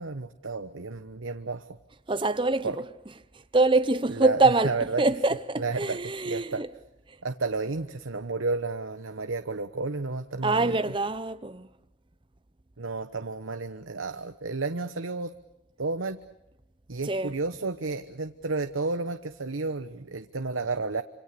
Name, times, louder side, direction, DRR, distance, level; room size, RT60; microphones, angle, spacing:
voice 1, 0.0-1.8 2.6-2.8 4.1-4.4 4.6-5.0 5.6-6.6 7.2-10.8 12.8-15.3 15.8-16.2 16.9-21.0, right 3 dB, 85° right, 1.1 m, -32 dB
voice 2, 2.1-2.9 3.3-6.7 7.1-7.2 10.4-11.7 17.0-17.4, right 3 dB, 25° right, 0.8 m, -25 dB
27.0 x 26.5 x 6.8 m
head